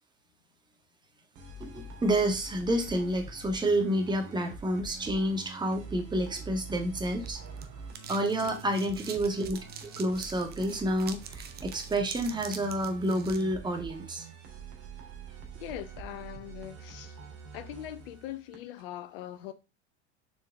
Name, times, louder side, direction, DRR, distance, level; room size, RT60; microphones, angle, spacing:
sound 1, 1.4-18.8, right 4 dB, 50° right, 2.1 m, -45 dB
voice 1, 1.6-7.4 8.1-9.6 10.0-14.2, right 1 dB, 15° right, 1.5 m, -29 dB
sound 2, 6.8-13.4, right 7 dB, 30° right, 0.9 m, -46 dB
voice 2, 15.5-17.2 17.5-19.5, left 12 dB, 55° left, 0.8 m, -41 dB
6.8 x 4.6 x 3.6 m
figure-of-eight pair, 75°, 34 cm